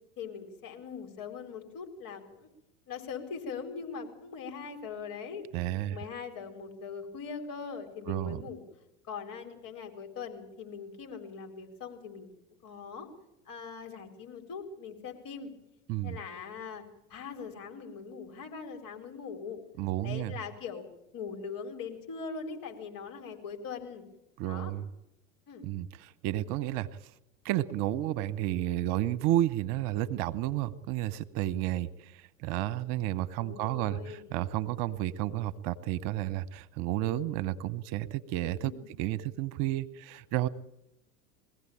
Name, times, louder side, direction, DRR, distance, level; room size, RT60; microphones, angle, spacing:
voice 1, 0.2-2.5 2.9-5.4 5.9-8.6 9.1-12.3 12.6-13.1 13.5-15.5 16.0-16.8 17.1-19.6 20.0-20.8 21.1-24.0 24.4-24.7 25.5-25.7 33.4-34.3 38.4-38.9, left 6 dB, 50° left, 4 dB, 4.5 m, -41 dB
voice 2, 5.5-6.0 8.1-8.4 15.9-16.2 19.8-20.3 24.4-24.9 25.6-27.1 27.4-40.5, right 14 dB, 55° right, 14 dB, 1.1 m, -31 dB
22.5 x 16.0 x 8.8 m, 0.88 s
hypercardioid pair, 80°, 43 cm